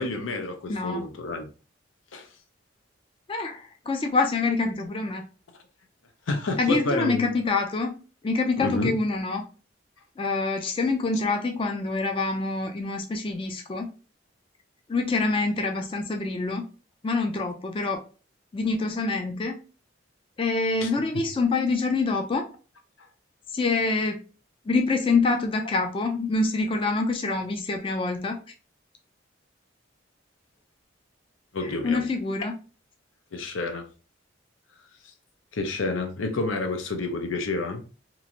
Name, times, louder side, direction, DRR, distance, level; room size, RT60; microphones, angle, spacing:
voice 1, 0.0-1.5 2.1-2.3 6.3-7.3 8.6-8.9 20.8-21.0 31.5-32.0 33.3-33.9 35.5-37.8, left 2 dB, 85° left, 0.6 m, -29 dB
voice 2, 0.7-1.1 3.3-5.2 6.6-7.9 8.2-9.4 10.2-13.9 14.9-16.6 17.0-18.0 18.5-19.6 20.4-22.5 23.5-24.2 24.7-28.4 31.6-32.5, left 3 dB, 25° left, 0.3 m, -26 dB
3.0 x 2.4 x 2.6 m
head